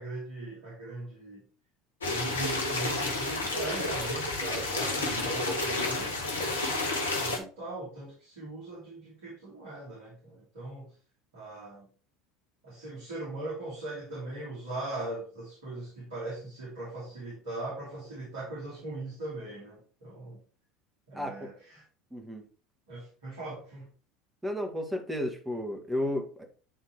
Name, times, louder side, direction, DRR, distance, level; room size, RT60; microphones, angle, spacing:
voice 1, 0.0-1.4 2.1-6.6 7.1-10.9 11.3-11.9 12.6-20.4 21.1-21.8 22.9-23.9, right 2 dB, 70° right, -8 dB, 3.2 m, -40 dB
sound 1, 2.0-7.4, left 2 dB, 80° left, 1.0 m, -30 dB
voice 2, 21.1-21.5 22.1-22.5 24.4-26.4, left 1 dB, 10° right, 3 dB, 1.7 m, -33 dB
9.2 x 3.6 x 3.1 m, 0.39 s
figure-of-eight pair, 70°, 0 cm